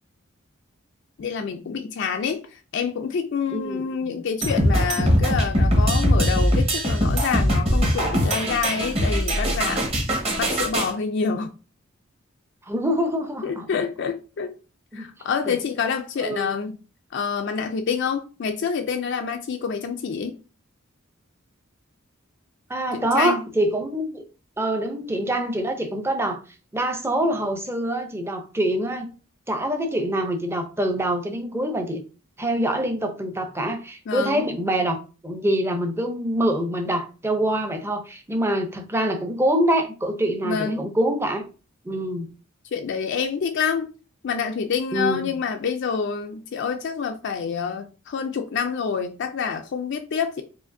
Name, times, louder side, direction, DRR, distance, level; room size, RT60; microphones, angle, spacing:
voice 1, 1.2-11.5 13.4-14.5 14.9-16.7 17.1-20.4 22.9-23.4 34.1-34.4 40.4-40.8 42.7-43.9 44.2-50.4, left 6 dB, 60° left, 0.4 m, -27 dB
voice 2, 3.5-4.2 12.7-13.7 14.9-15.1 15.5-15.6 16.2-16.7 22.7-24.2 24.6-26.4 26.7-29.1 29.5-32.0 32.4-35.0 35.2-41.5 41.8-42.3 44.9-45.2, right 1 dB, 10° right, 0.5 m, -25 dB
sound 1, 4.4-10.9, equal, 30° right, 1.0 m, -21 dB
4.8 x 2.5 x 2.6 m
head